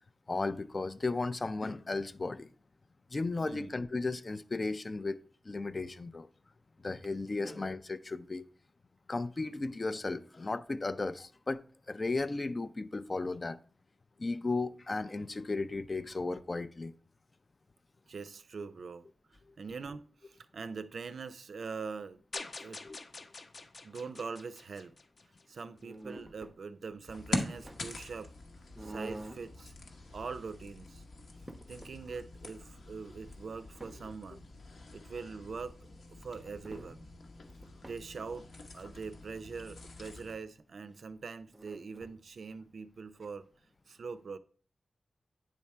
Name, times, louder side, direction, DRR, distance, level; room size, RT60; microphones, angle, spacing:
voice 1, 0.3-2.5 3.1-6.3 6.8-8.4 9.1-11.6 11.9-13.6 14.2-16.9 22.8-23.0, left 3 dB, 35° left, 0.4 m, -35 dB
voice 2, 18.1-22.2 22.6-22.8 23.8-24.9 25.5-28.3 28.8-29.7 30.1-31.0 31.7-34.5 34.9-37.1 37.8-43.5 43.9-44.4, right 5 dB, 75° right, 0.4 m, -43 dB
sound 1, 22.3-25.6, left 3 dB, 55° left, 0.7 m, -46 dB
sound 2, 25.8-26.5 27.3-28.0 28.7-29.5 30.0-30.6 31.0-31.1 31.4-32.0 33.2-34.0 36.2-36.3 36.6-36.9 37.3-38.0 41.5-42.2, right 1 dB, 10° right, 0.6 m, -48 dB
sound 3, 27.1-40.4, left 2 dB, 80° left, 1.0 m, -44 dB
9.2 x 3.5 x 4.3 m
wide cardioid pair, 140°, 0 cm